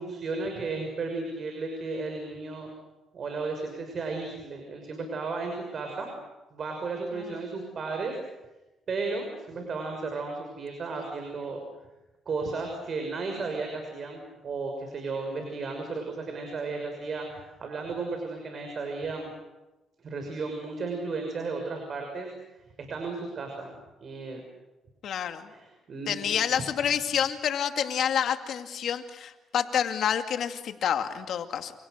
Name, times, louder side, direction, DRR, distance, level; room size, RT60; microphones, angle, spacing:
voice 1, 0.0-2.7 3.1-6.1 6.5-8.1 8.9-11.6 12.3-19.3 20.0-22.3 22.8-23.7 24.0-24.4 25.5-26.4, right 3 dB, 50° right, 3 dB, 6.2 m, -34 dB
voice 2, 25.0-25.4 26.1-31.7, left 8 dB, 70° left, 7 dB, 2.3 m, -28 dB
29.5 x 28.5 x 6.7 m, 1.0 s
cardioid pair, 90°, 0 cm